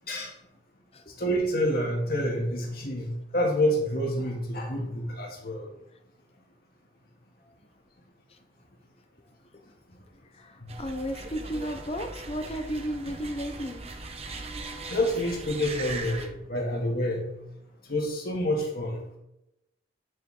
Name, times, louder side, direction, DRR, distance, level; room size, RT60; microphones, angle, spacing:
voice 1, 1.1-5.7 9.9-10.0 10.5-10.7 14.9-17.3 17.8-19.0, equal, 50° left, -2 dB, 2.6 m, -28 dB
voice 2, 10.3-13.9, equal, 30° left, 6 dB, 0.9 m, -34 dB
sound 1, 10.7-16.3, right 3 dB, 35° right, 1.0 m, -39 dB
10.5 x 7.0 x 3.9 m, 0.86 s
head